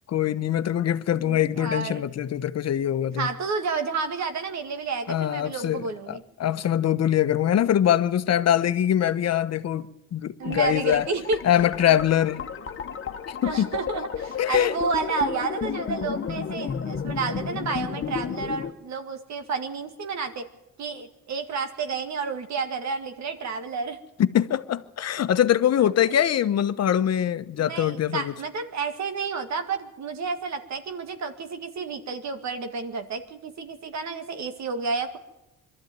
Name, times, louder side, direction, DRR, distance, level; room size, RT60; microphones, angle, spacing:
voice 1, 0.1-3.3 5.1-11.1 11.4-12.4 13.3-13.7 14.4-14.7 24.2-28.3, left 10 dB, 60° left, 1.0 m, -23 dB
voice 2, 1.1-2.0 3.2-6.2 10.4-11.4 13.4-20.5 20.8-24.0 25.8-25.9 27.6-35.2, right 4 dB, 65° right, 2.2 m, -30 dB
sound 1, 10.4-18.7, left 7 dB, 45° left, 1.4 m, -33 dB
22.5 x 13.5 x 9.4 m
cardioid pair, 90°, 30 cm